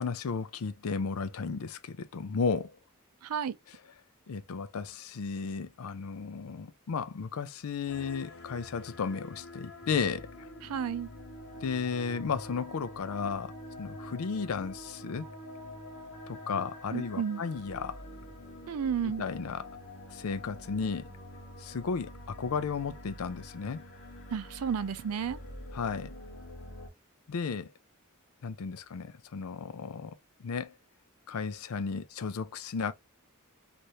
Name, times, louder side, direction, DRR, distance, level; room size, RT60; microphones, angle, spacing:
voice 1, 0.0-2.8 3.7-3.8 4.3-10.5 11.6-15.3 16.3-18.0 19.2-19.7 20.1-21.1 21.6-23.8 25.7-26.1 27.3-27.7 28.4-30.7 31.3-32.9, left 5 dB, 75° left, 0.5 m, -34 dB
voice 2, 3.2-3.6 10.6-11.1 16.9-17.4 18.7-19.2 24.3-25.4, right 7 dB, 75° right, 0.4 m, -32 dB
sound 1, 7.9-26.9, left 1 dB, 55° left, 1.1 m, -46 dB
2.8 x 2.5 x 3.1 m
head